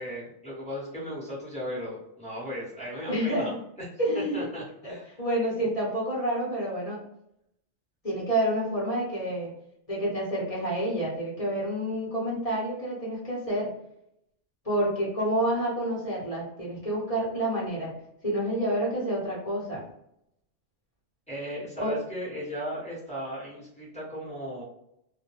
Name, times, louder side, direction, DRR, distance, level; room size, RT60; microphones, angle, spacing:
voice 1, 0.0-3.5 3.8-3.9 4.3-5.2 21.3-24.6, equal, 5° left, -8 dB, 1.0 m, -36 dB
voice 2, 3.1-3.5 4.0-4.5 4.8-7.0 8.0-9.5 9.9-13.7 14.6-17.9 18.2-19.8 21.8-21.9, right 1 dB, 30° left, -6 dB, 1.0 m, -28 dB
2.2 x 2.2 x 3.0 m, 0.79 s
omnidirectional pair, 1.2 m